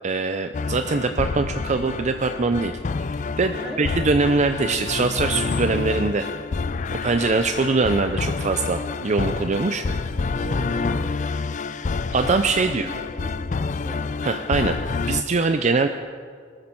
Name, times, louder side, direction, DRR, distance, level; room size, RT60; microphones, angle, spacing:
voice 1, 0.0-2.7 3.4-6.3 6.9-9.9 12.1-12.9 14.2-14.8 15.1-15.9, right 3 dB, 40° right, 8 dB, 0.5 m, -22 dB
sound 1, 0.5-15.2, left 4 dB, 40° left, 0.4 m, -28 dB
voice 2, 10.3-11.0 12.7-12.8 13.1-14.0, right 1 dB, ahead, -6 dB, 4.0 m, -37 dB
20.0 x 14.0 x 4.5 m, 2.1 s
head